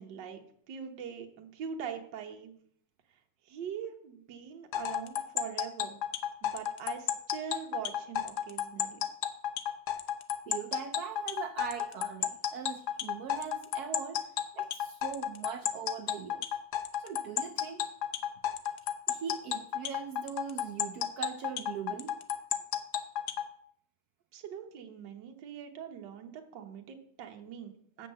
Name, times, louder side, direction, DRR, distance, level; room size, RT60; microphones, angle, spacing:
voice 1, 0.0-2.5 3.4-6.0 6.4-9.1 24.3-28.1, right 8 dB, 65° right, 3 dB, 1.6 m, -42 dB
sound 1, 4.7-23.5, left 10 dB, 65° left, 1.1 m, -32 dB
voice 2, 10.5-16.4 17.0-17.8 19.1-22.2, right 7 dB, 90° right, 7 dB, 0.8 m, -41 dB
7.5 x 5.4 x 7.5 m, 0.64 s
omnidirectional pair, 2.3 m